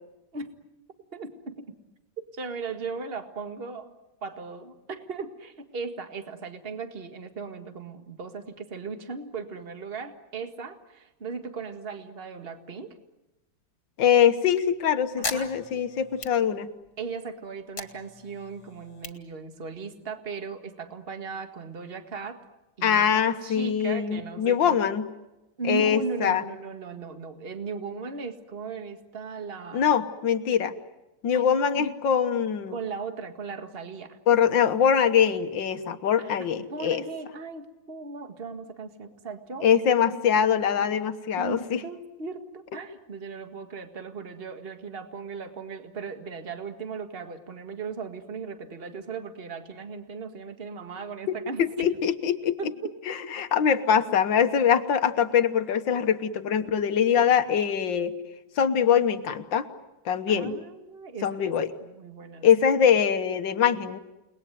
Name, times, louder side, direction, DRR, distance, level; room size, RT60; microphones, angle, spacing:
voice 1, 1.1-1.7 2.3-3.9 4.2-13.0 15.2-15.5 17.0-22.4 22.8-24.9 25.6-29.9 31.3-31.9 32.7-34.2 36.2-39.8 40.1-40.2 40.8-40.9 41.3-51.9 52.6-52.9 60.3-61.5 61.8-62.5, right 4 dB, 30° right, 8 dB, 2.0 m, -37 dB
voice 2, 14.0-16.7 22.8-25.1 25.7-26.4 29.7-30.7 31.2-32.8 34.3-37.0 39.6-41.8 51.3-52.6 53.1-58.1 58.6-59.7 60.1-60.5 61.2-61.7 62.4-64.0, left 8 dB, 85° left, 9 dB, 1.9 m, -23 dB
sound 1, 14.5-17.1 17.4-20.1, left 4 dB, 55° left, 2.5 m, -39 dB
30.0 x 20.0 x 9.3 m, 1.0 s
omnidirectional pair, 2.0 m